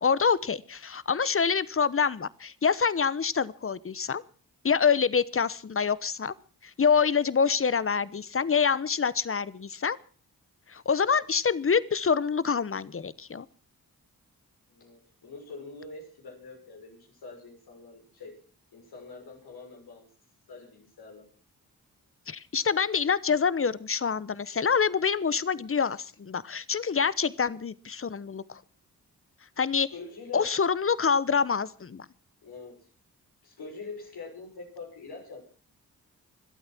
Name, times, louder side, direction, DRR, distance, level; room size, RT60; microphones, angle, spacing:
voice 1, 0.0-4.2 4.6-6.3 6.6-10.0 10.7-13.5 22.3-28.6 29.6-29.9 30.3-32.1, left 6 dB, 35° left, 19 dB, 1.0 m, -26 dB
voice 2, 14.7-18.4 18.7-20.1 20.5-21.3 29.9-30.5 32.4-32.9 33.4-35.4, left 4 dB, 80° left, 1 dB, 6.3 m, -44 dB
25.0 x 8.8 x 6.0 m, 0.41 s
supercardioid pair, 50°, 37 cm